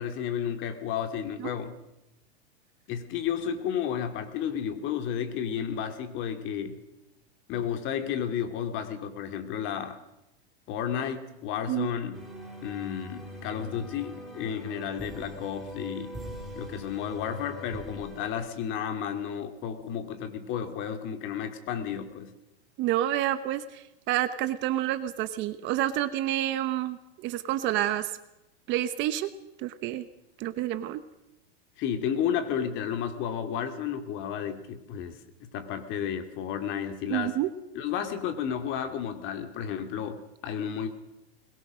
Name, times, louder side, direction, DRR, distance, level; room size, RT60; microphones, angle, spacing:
voice 1, 0.0-1.8 2.9-6.8 7.5-10.0 10.7-12.2 12.6-16.2 16.5-22.3 31.8-37.3 37.7-40.9, left 8 dB, 35° left, 7 dB, 2.5 m, -32 dB
sound 1, 12.1-18.3, equal, ahead, 4.7 m, -42 dB
voice 2, 22.8-28.1 28.7-29.3 29.6-30.1 30.4-31.0 37.1-37.5, right 13 dB, 35° right, 12 dB, 1.1 m, -29 dB
21.5 x 21.5 x 6.4 m, 0.91 s
supercardioid pair, 150°, 33 cm